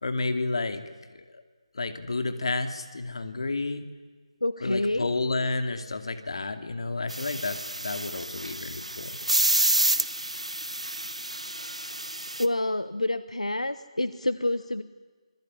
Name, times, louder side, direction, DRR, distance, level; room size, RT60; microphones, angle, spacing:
voice 1, 0.0-0.8 1.1-1.4 1.7-3.8 4.6-9.2, left 3 dB, 55° left, 9 dB, 2.7 m, -31 dB
voice 2, 4.4-5.1 12.4-14.8, left 1 dB, 80° left, 14 dB, 1.2 m, -28 dB
sound 1, 7.1-12.5, right 1 dB, 85° right, 1.6 m, -28 dB
26.5 x 22.0 x 9.8 m, 1.5 s
figure-of-eight pair, 155°, 3 cm